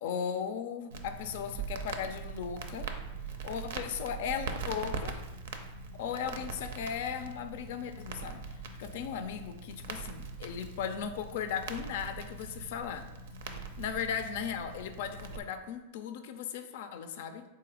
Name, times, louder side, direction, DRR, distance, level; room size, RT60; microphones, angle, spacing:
voice 1, 0.0-2.9 3.4-5.2 5.9-8.4 8.8-13.1 13.8-17.4, left 7 dB, 65° left, 9 dB, 0.4 m, -37 dB
Crackle, 0.9-15.4, right 4 dB, 80° right, 0.5 m, -41 dB
3.9 x 2.7 x 4.8 m, 1.0 s
hypercardioid pair, 120°, 0 cm